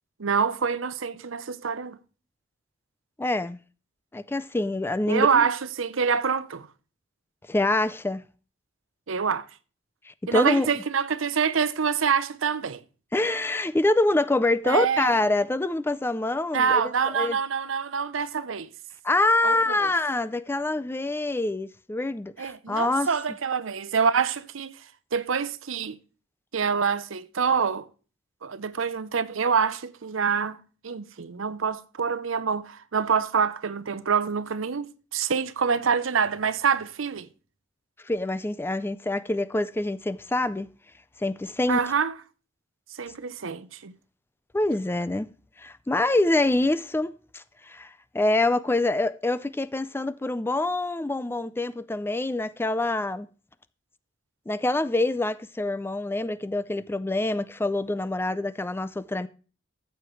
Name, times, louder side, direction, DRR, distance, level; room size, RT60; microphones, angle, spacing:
voice 1, 0.2-2.0 5.1-6.7 9.1-9.5 10.3-12.8 14.6-15.2 16.5-18.7 19.4-19.9 22.4-24.7 25.1-26.0 26.5-27.9 28.4-30.6 30.8-37.3 41.7-42.1 42.9-43.9, right 6 dB, 85° right, 0.7 m, -26 dB
voice 2, 3.2-3.6 4.1-5.3 7.5-8.2 10.1-10.7 13.1-17.4 19.0-23.1 38.0-40.7 41.2-41.8 44.5-45.3 45.6-53.3 54.5-59.3, left 2 dB, 10° left, 0.4 m, -26 dB
14.0 x 7.7 x 3.2 m
head